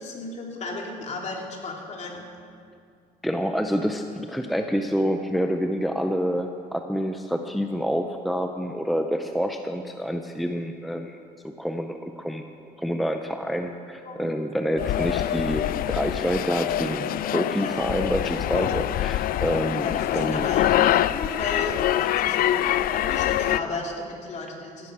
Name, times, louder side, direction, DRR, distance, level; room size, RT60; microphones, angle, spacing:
voice 1, 0.0-2.3 14.0-14.3 17.5-17.8 19.8-24.9, left 3 dB, 40° left, 0 dB, 2.7 m, -34 dB
voice 2, 3.2-11.2 11.6-12.5 12.8-20.5, equal, ahead, 5 dB, 0.6 m, -27 dB
sound 1, 14.8-23.6, left 12 dB, 60° left, 0.4 m, -25 dB
16.5 x 10.5 x 4.9 m, 2.3 s
cardioid pair, 110°, 17 cm